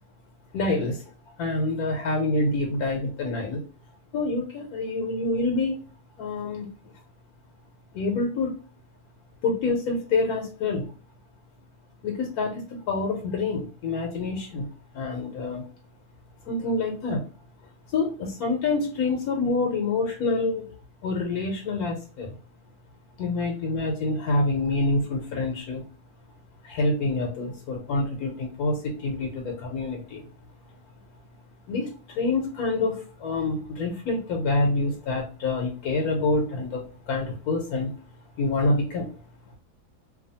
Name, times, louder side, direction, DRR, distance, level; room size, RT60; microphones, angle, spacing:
voice 1, 0.5-1.0 1.4-3.6 4.1-5.8 6.2-6.7 7.9-8.6 9.4-10.9 12.0-14.7 14.9-15.7 16.4-17.2 17.9-20.7 21.0-22.3 23.2-25.8 26.6-30.3 31.7-38.0 38.4-39.1, left 3 dB, 75° left, 2 dB, 1.1 m, -27 dB
2.7 x 2.3 x 2.6 m, 0.37 s
omnidirectional pair, 1.7 m